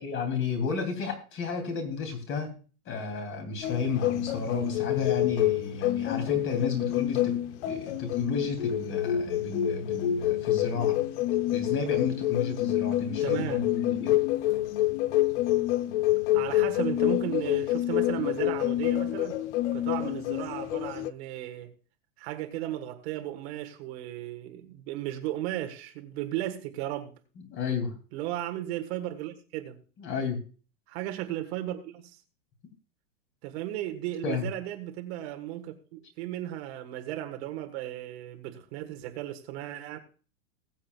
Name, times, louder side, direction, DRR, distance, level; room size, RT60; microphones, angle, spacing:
voice 1, 0.0-2.5 2.8-7.4 7.7-11.0 11.5-14.2 27.5-27.9 30.0-30.4 34.2-34.4, left 5 dB, 25° left, 3.0 m, -32 dB
sound 1, 3.6-21.1, left 14 dB, 50° left, 0.8 m, -27 dB
voice 2, 13.2-13.6 16.3-19.4 19.7-21.7 22.2-27.1 28.1-29.8 30.9-32.2 33.4-40.0, right 13 dB, 45° right, 1.5 m, -35 dB
20.5 x 7.5 x 2.4 m
hypercardioid pair, 140°, 44 cm